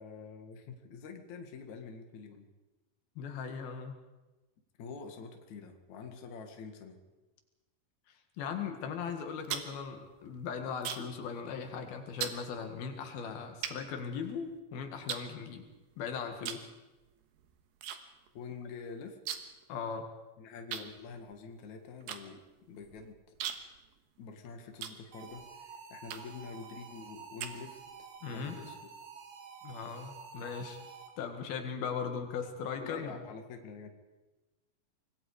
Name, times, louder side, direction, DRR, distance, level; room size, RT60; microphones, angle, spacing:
voice 1, 0.0-2.5 4.8-7.0 18.3-19.2 20.4-22.4 22.7-23.1 24.2-27.8 28.3-28.7 32.7-33.9, left 5 dB, 55° left, 5 dB, 3.0 m, -46 dB
voice 2, 3.2-4.0 8.4-15.7 16.0-16.7 19.7-20.1 28.2-28.6 29.6-30.8 31.2-33.2, left 6 dB, 85° left, 5 dB, 3.7 m, -38 dB
sound 1, 9.2-11.2 11.5-11.8 12.2-12.4 13.1-13.2 13.6-14.6 15.1-15.9 16.4-16.7 17.0-18.0 18.3-18.4 18.6-19.6 19.9-20.0 20.7-25.5 26.1-26.5 27.0-28.0, right 9 dB, 80° right, 3.1 m, -41 dB
sound 2, 25.1-31.4, right 5 dB, 60° right, 3.2 m, -50 dB
25.5 x 21.0 x 4.9 m, 1.1 s
omnidirectional pair, 4.2 m